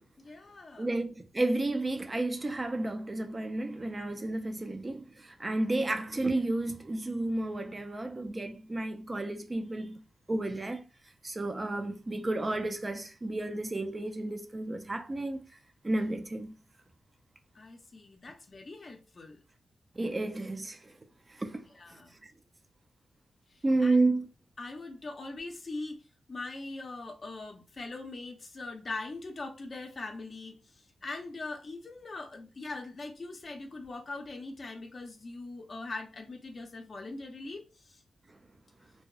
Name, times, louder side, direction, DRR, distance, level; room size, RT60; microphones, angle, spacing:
voice 1, 0.2-0.9 17.5-19.4 21.5-22.1 23.5-24.0 24.6-26.0 26.3-38.0, left 3 dB, 40° left, 0.5 m, -42 dB
voice 2, 0.8-10.0 10.3-10.8 11.2-15.4 15.8-16.5 20.0-20.9 21.3-21.6 21.9-22.3 23.6-24.3, right 2 dB, 25° right, 0.3 m, -31 dB
2.6 x 2.0 x 2.3 m
wide cardioid pair, 135°, 0 cm